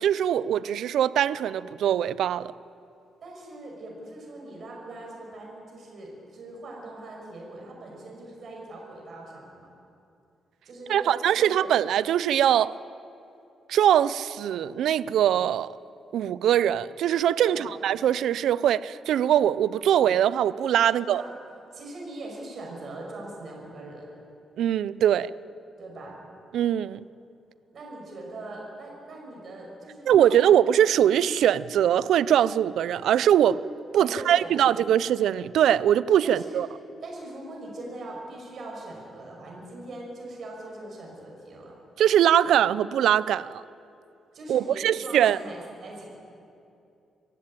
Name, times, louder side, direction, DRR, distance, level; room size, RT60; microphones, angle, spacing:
voice 1, 0.0-2.5 10.9-12.7 13.7-15.8 16.1-21.2 24.6-25.3 26.5-27.1 30.1-33.6 33.9-36.7 42.0-43.6 44.5-45.4, right 10 dB, 75° right, 0.5 m, -22 dB
voice 2, 3.2-9.7 10.6-11.7 17.4-17.7 20.8-21.3 21.7-24.1 25.8-26.2 27.7-30.5 33.9-34.8 36.2-36.6 37.0-41.8 44.3-46.1, right 2 dB, 45° right, 6.1 m, -41 dB
25.0 x 15.0 x 9.0 m
cardioid pair, 160°, 0 cm